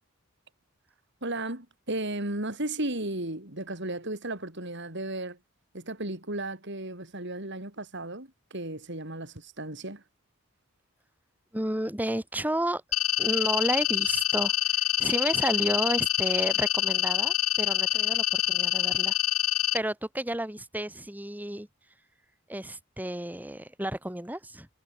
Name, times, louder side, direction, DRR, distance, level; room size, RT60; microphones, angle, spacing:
voice 1, 1.2-5.4 5.7-10.0, right 2 dB, 55° right, 5.5 m, -34 dB
voice 2, 11.5-12.8 13.2-19.2 19.7-21.7 22.5-24.7, right 1 dB, 10° right, 2.1 m, -32 dB
sound 1, 12.9-19.8, left 17 dB, 80° left, 0.6 m, -26 dB
head